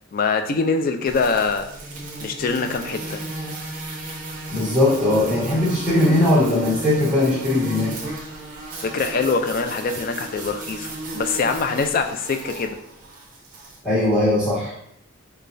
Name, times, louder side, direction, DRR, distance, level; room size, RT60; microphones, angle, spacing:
voice 1, 0.1-1.7 2.2-3.2 8.8-12.8, left 4 dB, 40° left, 6 dB, 0.3 m, -23 dB
sound 1, 1.1-13.8, right 2 dB, 40° right, 0.7 m, -34 dB
voice 2, 4.5-7.9 13.8-14.7, left 1 dB, 5° right, -9 dB, 1.5 m, -19 dB
4.9 x 2.2 x 2.6 m, 0.74 s
head